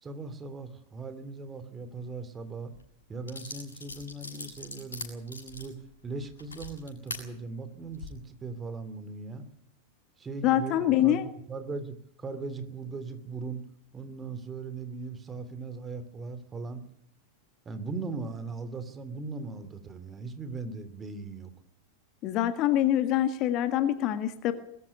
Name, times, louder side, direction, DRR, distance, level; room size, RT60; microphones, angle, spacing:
voice 1, 0.0-2.7 3.1-9.4 10.2-13.6 13.9-16.8 17.6-21.5, right 4 dB, 20° right, 10 dB, 2.8 m, -39 dB
sound 1, 2.7-2.8 3.3-7.2 7.8-8.1, left 3 dB, 75° left, 7.2 m, -41 dB
voice 2, 10.4-11.2 22.2-24.5, left 12 dB, 40° left, 10 dB, 1.7 m, -25 dB
21.5 x 14.0 x 9.6 m, 0.70 s
figure-of-eight pair, 90°, 0 cm